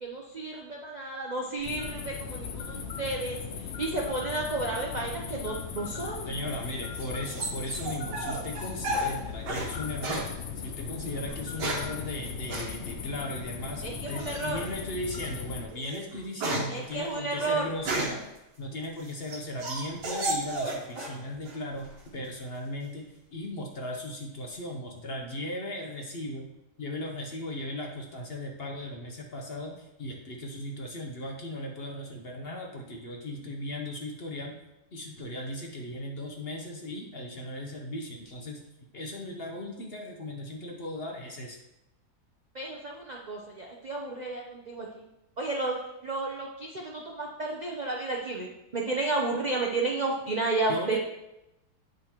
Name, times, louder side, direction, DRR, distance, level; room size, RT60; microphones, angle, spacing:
voice 1, 0.0-6.4 13.8-14.6 16.7-17.6 42.5-45.1 45.4-45.8 46.0-51.0, right 2 dB, 75° right, -1 dB, 0.4 m, -32 dB
sound 1, 1.6-15.7, left 6 dB, 70° left, 0.6 m, -38 dB
voice 2, 6.2-18.2 18.6-26.5 26.8-34.5 34.9-38.6 38.9-41.6 50.7-51.0, left 1 dB, 45° left, 1 dB, 0.9 m, -37 dB
sound 2, 6.4-9.7 10.0-10.3 11.2-12.0 12.5-12.7 14.2-14.6 15.1-15.3 15.7-18.3 18.8-21.2 21.5-22.1, right 2 dB, 90° right, 1.8 m, -33 dB
8.6 x 5.2 x 2.9 m, 0.89 s
omnidirectional pair, 1.8 m